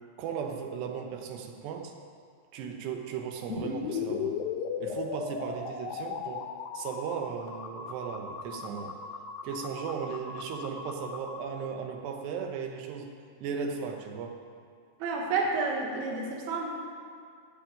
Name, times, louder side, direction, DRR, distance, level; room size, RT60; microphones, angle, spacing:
voice 1, 0.2-1.9 2.5-4.3 4.8-6.5 6.7-8.9 9.4-13.1 13.4-14.4, right 6 dB, 90° right, 3 dB, 3.3 m, -36 dB
sound 1, 3.5-11.4, left 5 dB, 75° left, 2.5 m, -37 dB
voice 2, 15.0-16.7, right 4 dB, 70° right, -1 dB, 3.3 m, -30 dB
14.0 x 6.0 x 9.0 m, 2.2 s
omnidirectional pair, 4.7 m